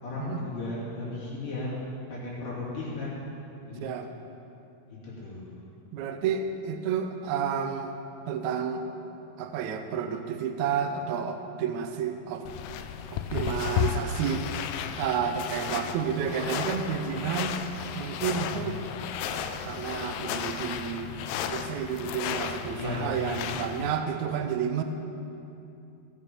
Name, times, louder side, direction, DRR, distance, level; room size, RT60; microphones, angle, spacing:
voice 1, 0.0-1.8 2.1-3.2 3.7-3.9 4.8-5.5 22.7-23.4, left 2 dB, 65° left, -8 dB, 4.3 m, -35 dB
voice 2, 3.8-4.1 5.9-7.9 8.3-8.8 9.4-12.5 13.1-17.6 17.9-18.8 19.2-21.2 21.5-24.8, right 7 dB, 80° right, 6 dB, 1.7 m, -31 dB
sound 1, 12.5-23.9, left 9 dB, 90° left, 2.4 m, -34 dB
16.5 x 6.5 x 5.5 m, 2.7 s
omnidirectional pair, 4.1 m